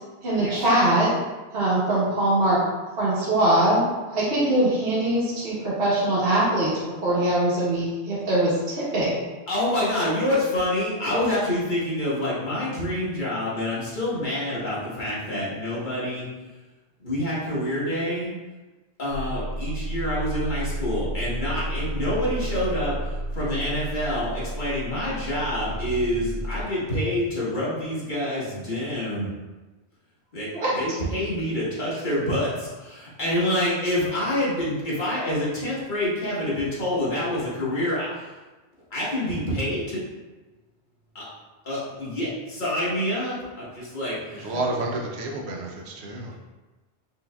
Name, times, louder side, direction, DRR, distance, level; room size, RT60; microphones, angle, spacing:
voice 1, 0.2-1.2 1.5-2.7 3.0-9.2 30.5-30.8, right 1 dB, 70° right, 1.2 m, -22 dB
voice 2, 9.5-16.3 17.0-18.3 19.0-29.3 30.3-38.3 38.9-40.0 41.1-41.2 41.6-44.6, left 1 dB, 50° left, 1.4 m, -27 dB
sound 1, 19.1-26.6, right 1 dB, 30° right, 0.7 m, -31 dB
voice 3, 44.3-46.4, right 2 dB, 85° right, 0.9 m, -30 dB
5.4 x 2.8 x 2.3 m
omnidirectional pair, 1.1 m